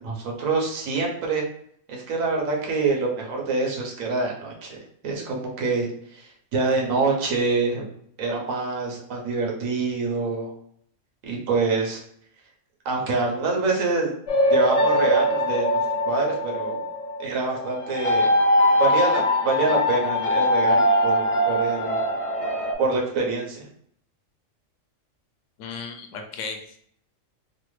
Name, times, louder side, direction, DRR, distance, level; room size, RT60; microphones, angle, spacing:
voice 1, 0.0-1.4 1.9-4.8 5.0-5.9 6.1-7.9 8.2-10.5 11.2-12.0 12.8-14.1 14.5-15.8 16.1-16.8 17.2-18.3 18.7-22.0 22.8-23.7, right 3 dB, 85° right, -1 dB, 1.2 m, -26 dB
sound 1, 14.3-22.7, left 1 dB, 40° left, 0.5 m, -22 dB
voice 2, 25.6-26.8, left 4 dB, 75° left, 4 dB, 0.9 m, -35 dB
3.3 x 2.1 x 3.1 m, 0.66 s
omnidirectional pair, 1.3 m